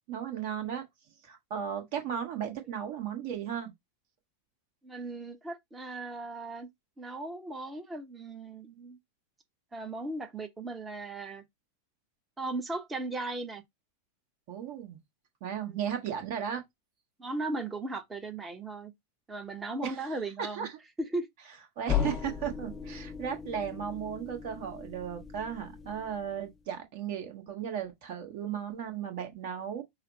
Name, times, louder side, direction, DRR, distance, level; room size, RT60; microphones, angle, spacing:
voice 1, 0.1-0.8 1.2-3.7 14.5-15.0 15.4-16.6 19.8-20.0 20.4-20.7 21.8-29.8, right 8 dB, 45° right, 1.3 m, -35 dB
voice 2, 4.8-6.7 7.0-9.0 9.7-11.4 12.4-13.6 15.6-16.0 17.2-18.9 19.3-20.7 21.0-21.3, right 2 dB, 15° right, 0.8 m, -37 dB
sound 1, 21.9-26.6, left 8 dB, 20° left, 0.4 m, -36 dB
5.6 x 2.0 x 3.8 m
figure-of-eight pair, 90°, 0 cm